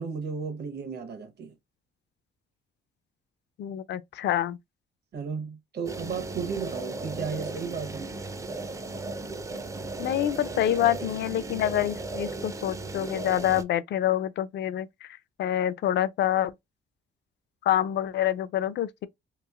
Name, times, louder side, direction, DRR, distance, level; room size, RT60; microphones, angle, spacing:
voice 1, 0.0-1.5 5.1-8.1, right 5 dB, 55° right, 0.9 m, -34 dB
voice 2, 3.6-4.6 10.0-15.1 15.4-16.5 17.6-19.1, left 12 dB, 60° left, 0.4 m, -26 dB
sound 1, 5.9-13.6, right 3 dB, 15° right, 0.4 m, -36 dB
3.0 x 2.5 x 2.3 m
cardioid pair, 90°, 20 cm